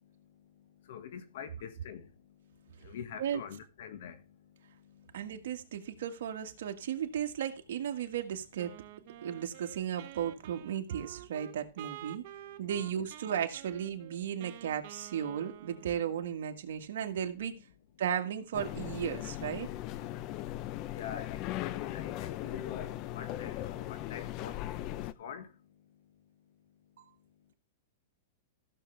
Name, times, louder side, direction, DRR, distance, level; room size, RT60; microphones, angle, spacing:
voice 1, 0.6-2.1 2.4-5.5 6.8-7.0 12.7-12.8 20.9-24.7 25.0-25.5, left 8 dB, 65° left, 1.6 m, -45 dB
voice 2, 5.1-8.7 9.2-12.2 12.6-17.6 18.0-19.7, right 9 dB, 75° right, 1.7 m, -35 dB
Wind instrument woodwind instrument, 8.6-16.2, right 15 dB, 55° right, 1.1 m, -49 dB
sound 1, 18.5-25.1, left 14 dB, 40° left, 0.6 m, -38 dB
15.0 x 6.7 x 3.3 m
hypercardioid pair, 140°, 0 cm